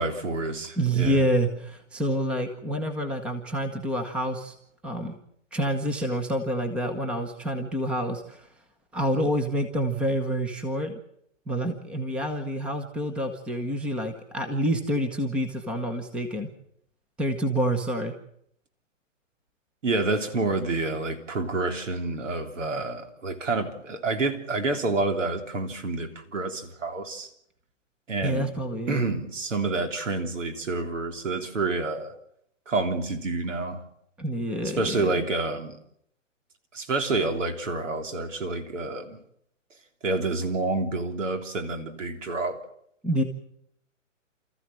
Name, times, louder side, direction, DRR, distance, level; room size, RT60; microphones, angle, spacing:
voice 1, 0.0-1.2 19.8-27.3 28.1-28.5 28.9-32.1 32.7-33.8 34.6-35.8 36.7-39.2 40.0-42.6, right 3 dB, 70° right, 3.5 m, -28 dB
voice 2, 0.8-4.5 4.8-5.2 5.5-8.5 8.9-11.0 11.5-16.5 17.2-18.1 28.2-29.0 34.2-35.2 43.0-43.2, right 1 dB, 5° right, 1.0 m, -27 dB
29.5 x 14.0 x 7.6 m
hypercardioid pair, 150°, 39 cm